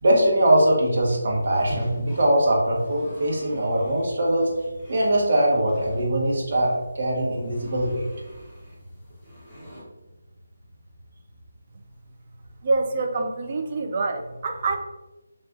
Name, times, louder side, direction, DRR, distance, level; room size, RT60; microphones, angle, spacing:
voice 1, 0.0-4.5 4.9-8.1, right 1 dB, 55° right, -2 dB, 0.8 m, -21 dB
sound 1, 1.3-9.8, equal, ahead, 0.9 m, -43 dB
voice 2, 12.6-14.8, right 3 dB, 35° right, 4 dB, 0.3 m, -26 dB
2.3 x 2.3 x 3.6 m, 1.1 s
figure-of-eight pair, 160°, 0 cm